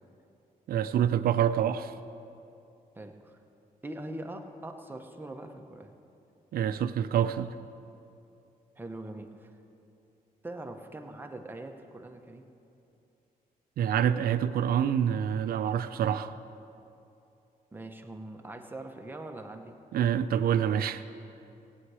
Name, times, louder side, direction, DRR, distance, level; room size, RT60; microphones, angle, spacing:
voice 1, 0.7-1.9 6.5-7.5 13.8-16.4 19.9-21.0, right 9 dB, 80° right, 11 dB, 0.5 m, -26 dB
voice 2, 2.9-3.4 3.8-5.9 8.8-9.6 10.4-12.5 17.7-19.8, right 1 dB, 15° right, 3 dB, 0.8 m, -42 dB
17.5 x 9.0 x 4.8 m, 2.7 s
wide cardioid pair, 150°, 15 cm